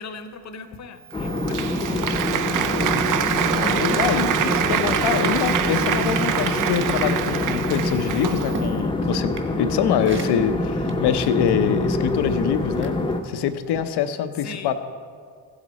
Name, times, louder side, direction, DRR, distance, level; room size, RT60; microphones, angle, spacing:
voice 1, 0.0-3.5 14.4-14.7, left 4 dB, 45° left, 9 dB, 0.9 m, -40 dB
sound 1, 1.1-13.2, left 2 dB, 10° left, 0.7 m, -25 dB
Applause, 1.1-8.7, right 10 dB, 50° right, 0.5 m, -25 dB
sound 2, 2.5-5.8 6.0-13.3 13.7-14.0, right 2 dB, 30° right, 1.4 m, -40 dB
voice 2, 3.5-13.0 13.2-14.7, left 9 dB, 80° left, 9 dB, 0.8 m, -24 dB
15.5 x 8.0 x 4.1 m, 2.1 s
cardioid pair, 105°, 40 cm